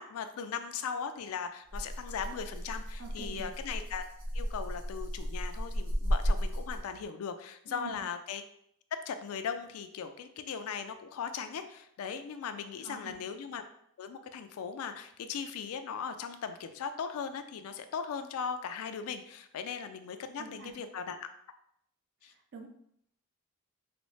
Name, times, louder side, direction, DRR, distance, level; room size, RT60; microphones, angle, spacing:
voice 1, 0.0-4.1 4.3-8.4 9.1-13.6 14.0-21.3 22.2-22.3, left 6 dB, 70° left, 8 dB, 0.3 m, -38 dB
Rattle (instrument), 1.7-7.0, equal, 75° right, 1.4 m, -34 dB
voice 2, 3.0-3.5 7.7-8.0 12.8-13.2 20.4-20.7 22.2-22.7, right 4 dB, 50° right, 3 dB, 0.5 m, -46 dB
4.1 x 2.0 x 3.1 m, 0.72 s
head